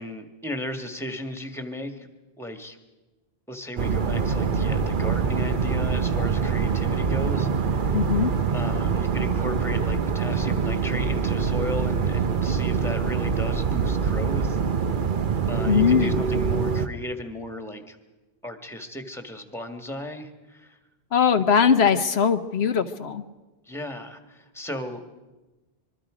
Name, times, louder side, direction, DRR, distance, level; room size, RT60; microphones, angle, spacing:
voice 1, 0.0-2.1 2.4-2.8 3.5-8.0 8.5-14.6 15.5-18.0 18.4-20.8 23.6-25.0, left 1 dB, ahead, 6 dB, 1.6 m, -35 dB
sound 1, 3.8-16.9, right 6 dB, 55° right, 1.0 m, -24 dB
voice 2, 7.9-8.3 15.6-16.2 21.1-23.3, left 7 dB, 85° left, 9 dB, 1.2 m, -21 dB
25.0 x 22.5 x 5.0 m, 1.1 s
omnidirectional pair, 1.0 m